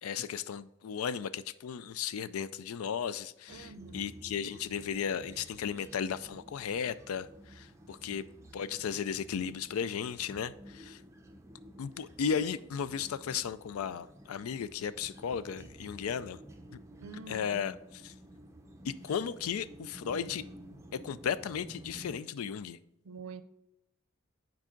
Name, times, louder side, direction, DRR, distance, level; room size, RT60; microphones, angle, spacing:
voice 1, 0.0-8.2 8.5-11.0 11.8-16.4 17.3-17.8 18.0-18.1 18.8-20.4 20.9-22.8, left 7 dB, 85° left, 16 dB, 0.4 m, -35 dB
sound 1, 3.5-22.2, right 1 dB, 15° right, 0.5 m, -52 dB
voice 2, 3.5-4.1 8.1-8.3 17.0-17.6 23.0-23.4, right 4 dB, 85° right, 12 dB, 0.5 m, -46 dB
7.4 x 4.7 x 3.8 m, 0.85 s
head